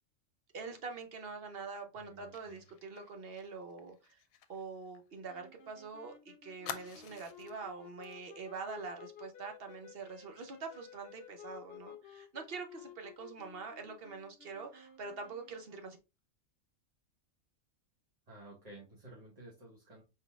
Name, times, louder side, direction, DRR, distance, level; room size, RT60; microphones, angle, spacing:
voice 1, 0.5-4.2 4.5-16.0, right 4 dB, 55° right, 5 dB, 0.8 m, -45 dB
voice 2, 1.9-2.6 18.3-20.0, right 2 dB, 30° right, -4 dB, 1.3 m, -53 dB
Fire, 2.3-5.8 6.0-6.1 6.6-7.6 8.0-8.2 8.5-8.8, left 9 dB, 85° left, 1.0 m, -49 dB
sound 1, 5.3-15.8, left 9 dB, 55° left, 0.8 m, -55 dB
4.6 x 3.9 x 2.4 m, 0.27 s
omnidirectional pair, 1.4 m